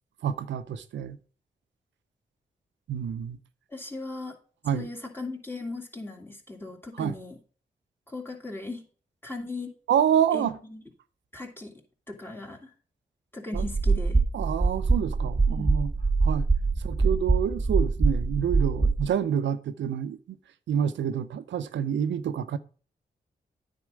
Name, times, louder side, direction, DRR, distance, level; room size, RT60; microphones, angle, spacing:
voice 1, 0.2-1.2 2.9-3.4 4.6-4.9 7.0-7.1 9.9-10.6 13.5-13.6 14.3-15.9 16.2-16.5 16.8-20.2 20.7-22.6, right 8 dB, 85° right, 0.6 m, -27 dB
voice 2, 3.7-4.4 4.7-7.4 8.1-8.8 9.2-9.7 10.3-10.8 11.3-11.7 12.1-12.7 13.3-14.2 15.5-15.8, left 2 dB, 10° left, 2.7 m, -38 dB
sound 1, 13.5-19.1, right 4 dB, 20° right, 0.9 m, -24 dB
9.5 x 4.3 x 6.2 m
supercardioid pair, 40°, 18 cm